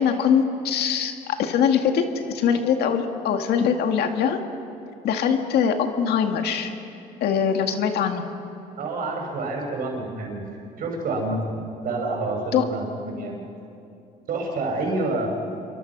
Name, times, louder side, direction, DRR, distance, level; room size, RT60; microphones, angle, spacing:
voice 1, 0.0-4.4 5.0-6.7 7.2-8.2 12.5-12.6, left 7 dB, 75° left, 5 dB, 2.1 m, -22 dB
voice 2, 8.8-10.4 10.8-13.4 14.3-15.3, right 2 dB, 60° right, 1 dB, 6.4 m, -28 dB
28.0 x 23.5 x 6.1 m, 2.6 s
cardioid pair, 110°, 17 cm